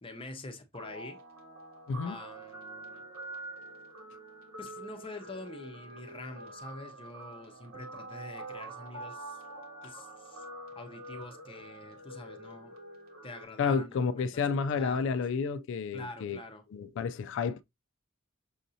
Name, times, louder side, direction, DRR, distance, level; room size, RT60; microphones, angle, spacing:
voice 1, 0.0-1.2 2.0-3.0 4.6-9.4 9.8-10.5 10.8-12.7 13.2-14.5 14.7-15.2 15.9-16.6, left 2 dB, 25° left, 0.6 m, -46 dB
Guitar, 0.7-13.4, right 2 dB, 70° right, 1.5 m, -46 dB
voice 2, 1.9-2.2 13.6-16.4 16.7-17.6, left 5 dB, 60° left, 0.3 m, -30 dB
6.3 x 2.6 x 2.6 m
head